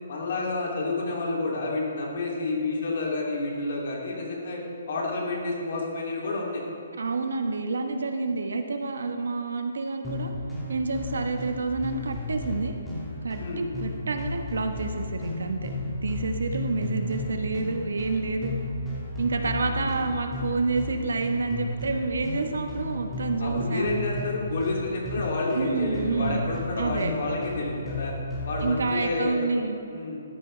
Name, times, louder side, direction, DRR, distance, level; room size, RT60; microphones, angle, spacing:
voice 1, 0.1-4.6 4.9-6.6 13.4-13.6 19.8-19.9 23.4-28.1 28.5-29.5 29.9-30.2, left 2 dB, 55° left, -2 dB, 2.6 m, -29 dB
voice 2, 7.0-10.3 10.7-12.7 13.2-15.7 16.0-18.6 19.2-24.1 25.5-26.4 26.8-27.1 28.6-29.8, right 3 dB, 90° right, 6 dB, 1.0 m, -28 dB
sound 1, 10.0-28.9, left 2 dB, 5° left, 1.7 m, -34 dB
13.0 x 10.0 x 3.3 m, 2.4 s
hypercardioid pair, 170°, 0 cm